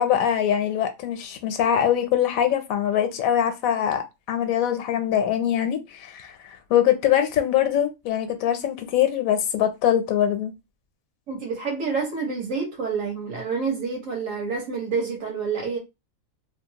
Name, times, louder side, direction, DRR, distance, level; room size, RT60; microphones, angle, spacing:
voice 1, 0.0-10.5, left 10 dB, 80° left, 1.0 m, -23 dB
voice 2, 11.3-15.8, right 5 dB, 65° right, 1.5 m, -28 dB
3.0 x 2.0 x 2.8 m
omnidirectional pair, 1.5 m